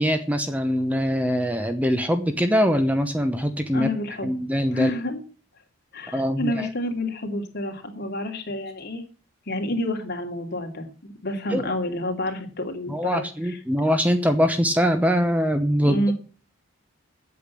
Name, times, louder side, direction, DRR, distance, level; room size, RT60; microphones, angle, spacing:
voice 1, 0.0-3.9 4.2-4.9 6.1-6.7 11.5-11.6 12.9-16.1, equal, 5° right, 7 dB, 0.9 m, -23 dB
voice 2, 3.7-4.3 4.7-5.2 5.9-9.0 9.5-13.6 15.8-16.1, left 1 dB, 50° left, 3 dB, 2.8 m, -29 dB
8.4 x 8.1 x 8.5 m, 0.38 s
head